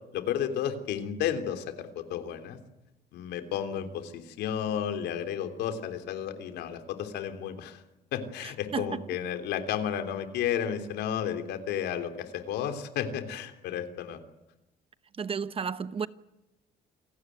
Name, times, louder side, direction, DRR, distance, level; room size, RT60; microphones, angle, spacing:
voice 1, 0.1-2.6 3.1-7.8 8.1-14.2, left 9 dB, 80° left, 3.4 m, -32 dB
voice 2, 8.4-9.0 15.2-16.1, right 6 dB, 35° right, 1.0 m, -33 dB
28.5 x 17.5 x 9.4 m
cardioid pair, 110°, 17 cm